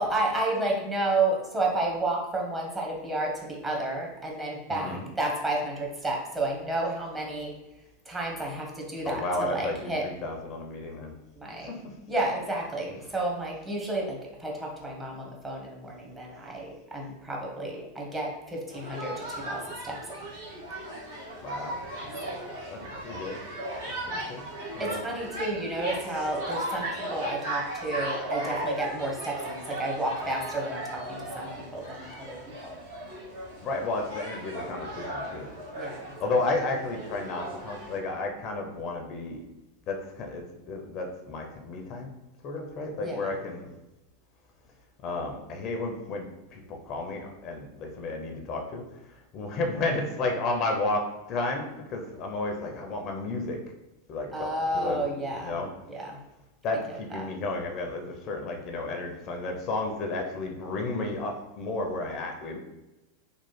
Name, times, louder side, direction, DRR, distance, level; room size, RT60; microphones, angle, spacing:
voice 1, 0.0-7.5 8.1-10.0 11.3-11.7 12.1-20.0 22.2-22.3 24.8-32.7 35.7-36.1 43.0-43.3 54.3-55.6 55.9-56.2 57.1-57.3, right 2 dB, 15° right, -2 dB, 0.9 m, -31 dB
voice 2, 4.7-5.0 9.0-11.1 11.6-11.9 21.4-21.8 22.7-23.4 23.9-24.4 24.7-25.0 32.0-32.2 33.6-35.5 36.2-39.4 39.9-42.1 42.4-43.7 45.0-48.8 49.3-53.6 54.1-55.7 56.6-62.6, left 2 dB, 45° left, 3 dB, 0.5 m, -32 dB
sound 1, 18.7-38.0, right 1 dB, 70° right, 1.1 m, -36 dB
3.1 x 2.1 x 3.1 m, 1.0 s
hypercardioid pair, 95°, 0 cm